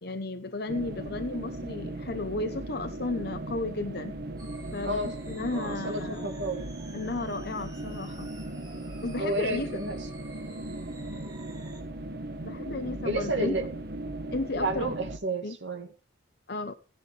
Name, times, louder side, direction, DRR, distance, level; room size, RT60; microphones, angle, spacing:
voice 1, 0.0-4.2 4.7-6.4 6.9-8.3 9.0-9.8 12.4-13.6 14.3-14.9 15.4-15.6 16.5-16.7, left 2 dB, 55° left, 0.9 m, -34 dB
sound 1, 0.7-15.2, right 1 dB, 55° right, 1.3 m, -38 dB
sound 2, 4.4-11.8, right 2 dB, 20° right, 3.8 m, -53 dB
voice 2, 4.8-5.2 5.5-6.7 9.2-10.1 11.1-11.4 13.0-13.6 14.5-15.9, right 1 dB, 75° right, 2.3 m, -31 dB
17.0 x 11.0 x 3.4 m
head